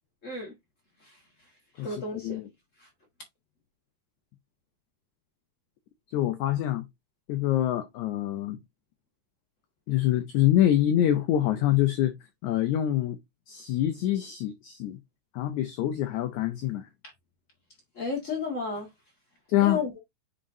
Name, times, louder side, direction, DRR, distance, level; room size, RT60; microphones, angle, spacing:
voice 1, 0.2-0.5 1.0-1.2 1.8-2.4 2.8-2.9 17.9-18.9 19.6-20.0, left 4 dB, 70° left, 0.7 m, -32 dB
voice 2, 1.8-2.5 6.1-6.9 7.3-8.6 9.9-12.1 12.4-13.2 13.5-15.0 15.3-16.9 19.5-19.8, left 12 dB, 90° left, 1.6 m, -25 dB
9.0 x 4.1 x 2.6 m
omnidirectional pair, 4.2 m